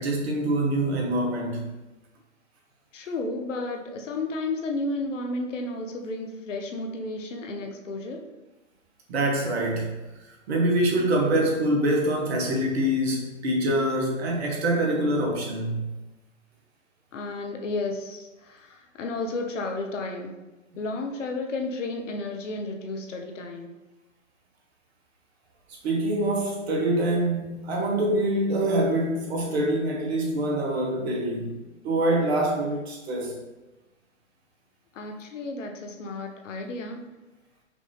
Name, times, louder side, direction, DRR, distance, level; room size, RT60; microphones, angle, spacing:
voice 1, 0.0-1.7 9.1-15.9 25.8-31.5 31.8-33.4, right 1 dB, 55° right, 0 dB, 1.2 m, -25 dB
voice 2, 2.9-8.2 17.1-20.4 20.8-23.7 34.9-37.0, left 2 dB, 70° left, 3 dB, 0.8 m, -32 dB
5.2 x 2.7 x 3.2 m, 1.1 s
hypercardioid pair, 125°, 39 cm